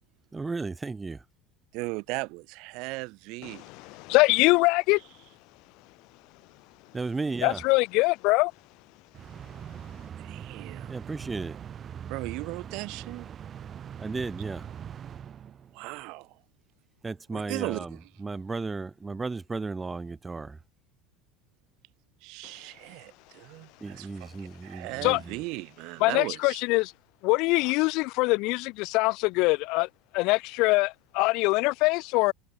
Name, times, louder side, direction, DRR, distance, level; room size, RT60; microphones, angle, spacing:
voice 1, 0.3-1.2 6.9-7.6 10.9-11.6 14.0-14.7 17.0-20.6 23.8-25.4, right 3 dB, 15° right, 1.2 m, -34 dB
voice 2, 1.7-3.7 10.2-11.0 12.1-13.3 15.7-16.4 17.3-18.1 22.2-26.6 27.6-27.7, right 25 dB, 65° right, 5.1 m, -37 dB
voice 3, 3.8-5.0 7.4-8.5 25.0-25.2 26.0-26.9 27.2-29.9 30.1-32.3, left 25 dB, 65° left, 0.4 m, -23 dB
sound 1, 9.1-16.0, right 8 dB, 35° right, 2.2 m, -42 dB
supercardioid pair, 105°, 0 cm